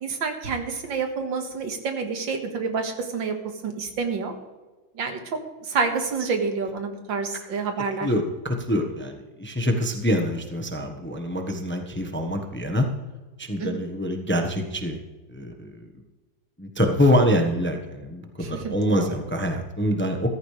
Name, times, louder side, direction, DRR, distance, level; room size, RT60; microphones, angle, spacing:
voice 1, 0.0-3.3 3.6-4.3 5.0-5.2 5.6-8.1 13.6-13.8 18.4-19.1, right 5 dB, 80° right, 5 dB, 2.3 m, -28 dB
voice 2, 8.0-12.9 13.4-15.0 15.3-15.9 16.6-20.3, equal, 10° left, 4 dB, 0.9 m, -25 dB
14.5 x 14.5 x 3.3 m, 1.2 s
omnidirectional pair, 2.0 m